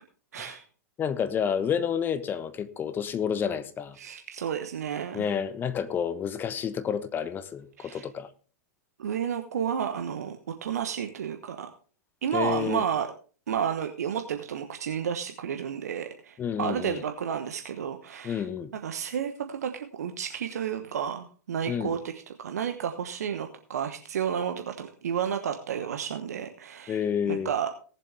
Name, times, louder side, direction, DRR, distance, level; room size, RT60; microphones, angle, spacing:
voice 1, 0.3-0.6 4.0-5.3 7.8-8.0 9.0-11.7 12.2-13.1 13.5-18.4 18.8-22.1 22.4-27.0 27.3-27.7, right 8 dB, 60° right, 1.1 m, -31 dB
voice 2, 1.0-4.0 5.1-8.3 12.3-12.8 16.4-17.0 18.2-18.7 21.7-22.0 26.9-27.5, left 8 dB, 20° left, 1.0 m, -29 dB
18.5 x 7.5 x 3.4 m
figure-of-eight pair, 100°, 9 cm